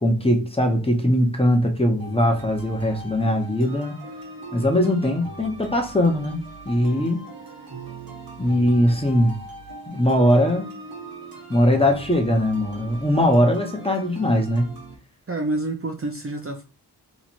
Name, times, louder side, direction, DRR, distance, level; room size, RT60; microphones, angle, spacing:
voice 1, 0.0-4.0 4.5-7.3 8.4-9.4 9.9-10.7 11.5-14.7, left 1 dB, 15° left, 1.0 m, -20 dB
sound 1, 2.0-15.0, right 3 dB, 55° right, 1.2 m, -40 dB
voice 2, 15.3-16.6, right 2 dB, 35° right, 0.6 m, -28 dB
3.0 x 2.5 x 4.2 m
cardioid pair, 50°, 42 cm